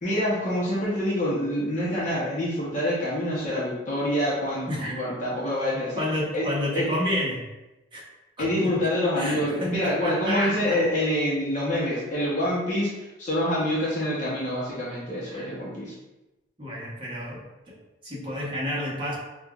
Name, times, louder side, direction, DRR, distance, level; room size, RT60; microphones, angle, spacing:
voice 1, 0.0-6.0 6.3-6.4 6.7-6.9 8.4-12.9 13.2-15.9, left 1 dB, 40° left, -7 dB, 0.8 m, -26 dB
voice 2, 6.0-7.4 7.9-8.0 8.4-8.7 9.2-10.8 15.2-15.5 16.6-19.2, left 1 dB, 25° right, -5 dB, 1.0 m, -30 dB
5.4 x 2.4 x 2.4 m, 1.0 s
head